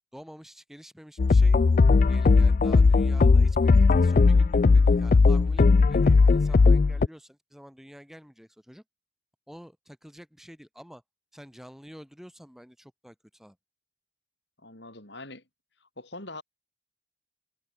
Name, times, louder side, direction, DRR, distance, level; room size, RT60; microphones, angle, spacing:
voice 1, 0.1-1.6 2.1-8.8 9.5-11.0 11.3-13.6, equal, ahead, 3.4 m, -48 dB
sound 1, 1.2-7.1, left 4 dB, 40° left, 0.3 m, -18 dB
voice 2, 14.6-15.4 16.0-16.4, left 2 dB, 60° left, 6.4 m, -42 dB
head